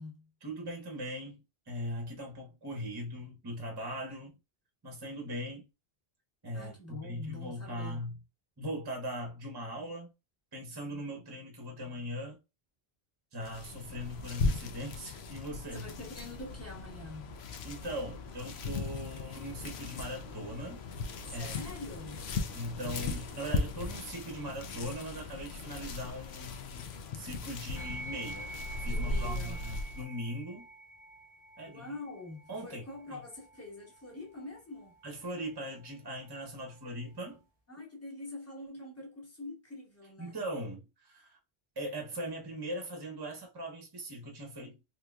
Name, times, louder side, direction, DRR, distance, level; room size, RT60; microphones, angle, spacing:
voice 1, 0.4-4.4 4.8-5.7 6.4-8.1 8.6-10.1 10.5-12.4 13.3-15.9 17.6-20.8 21.3-21.6 22.5-28.5 28.8-30.7 31.6-32.0 32.5-32.8 33.1-33.2 35.0-37.4 40.2-41.4 41.8-44.8, equal, 25° right, 0.8 m, -40 dB
voice 2, 6.5-8.0 15.7-17.4 21.2-22.2 28.8-29.6 31.7-34.9 37.7-40.4, left 2 dB, 15° left, 1.1 m, -45 dB
sound 1, 13.4-30.0, left 3 dB, 85° left, 0.9 m, -38 dB
sound 2, 27.7-37.4, right 1 dB, 40° left, 1.0 m, -49 dB
3.7 x 2.9 x 2.3 m
omnidirectional pair, 1.0 m